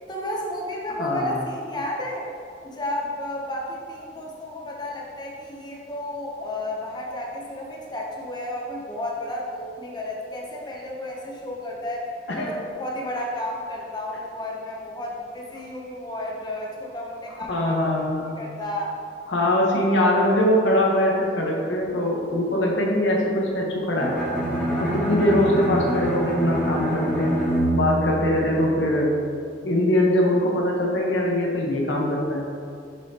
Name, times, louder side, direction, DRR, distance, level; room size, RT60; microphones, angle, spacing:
voice 1, 0.1-2.3 2.6-12.1 12.3-17.8 18.2-18.9, left 1 dB, 25° left, -2 dB, 0.8 m, -32 dB
voice 2, 1.0-1.4 12.4-12.6 17.3-18.4 19.3-24.1 24.8-27.4 27.7-29.1 29.6-32.5, left 1 dB, 90° left, -2 dB, 1.1 m, -22 dB
Bowed string instrument, 24.0-29.0, right 1 dB, 10° left, 1.5 m, -26 dB
6.7 x 5.5 x 2.9 m, 2.4 s
head